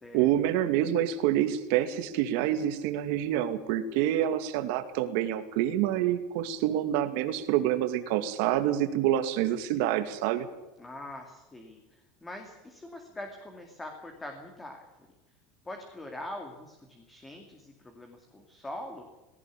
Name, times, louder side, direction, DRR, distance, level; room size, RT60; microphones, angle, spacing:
voice 1, 0.1-10.5, right 12 dB, 60° right, 8 dB, 2.4 m, -27 dB
voice 2, 10.8-14.9 15.6-19.0, left 1 dB, 10° left, 3 dB, 2.4 m, -43 dB
18.5 x 17.5 x 8.5 m, 1.0 s
supercardioid pair, 170°, 0 cm